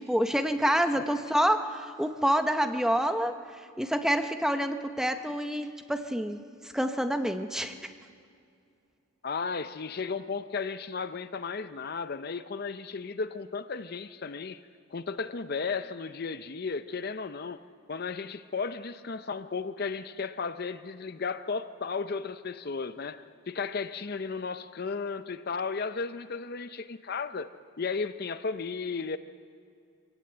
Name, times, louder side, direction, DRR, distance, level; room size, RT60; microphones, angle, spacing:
voice 1, 0.0-6.4 6.6-7.9, equal, ahead, 0.7 m, -28 dB
voice 2, 9.2-14.6 14.9-17.6 17.9-27.5 27.8-29.2, left 4 dB, 45° left, 0.5 m, -34 dB
24.0 x 17.5 x 7.8 m
head